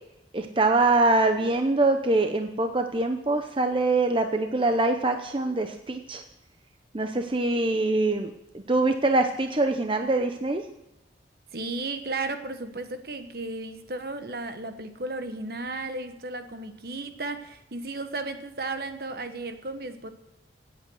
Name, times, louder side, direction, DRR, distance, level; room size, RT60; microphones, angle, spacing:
voice 1, 0.3-6.2 6.9-8.3 8.7-10.6, right 2 dB, 30° right, 6 dB, 0.8 m, -24 dB
voice 2, 11.5-20.1, right 2 dB, 55° right, 8 dB, 1.2 m, -34 dB
17.0 x 8.4 x 6.3 m, 0.92 s
head